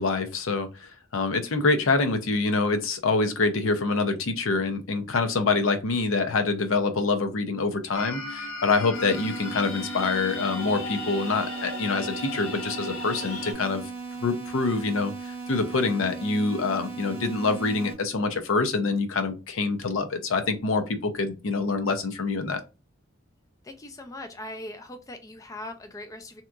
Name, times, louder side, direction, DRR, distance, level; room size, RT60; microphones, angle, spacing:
voice 1, 0.0-13.8 14.2-22.6, left 3 dB, 65° left, 8 dB, 0.6 m, -26 dB
sound 1, 7.9-13.5, left 3 dB, 90° left, 1.0 m, -36 dB
sound 2, 8.9-17.9, right 4 dB, 10° right, 0.7 m, -37 dB
voice 2, 23.6-26.4, left 1 dB, 15° left, 6 dB, 0.3 m, -40 dB
3.4 x 2.8 x 2.3 m, 0.28 s
head